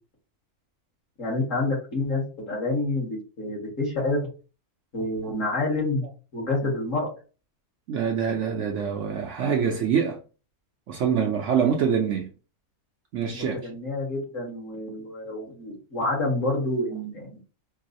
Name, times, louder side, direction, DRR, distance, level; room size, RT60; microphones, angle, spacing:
voice 1, 1.2-4.3 4.9-6.1 6.3-7.1 13.3-17.4, left 2 dB, 60° left, 1.9 m, -28 dB
voice 2, 7.9-10.2 10.9-12.3 13.1-13.6, right 7 dB, 65° right, 0.8 m, -25 dB
4.6 x 2.0 x 2.5 m
omnidirectional pair, 1.5 m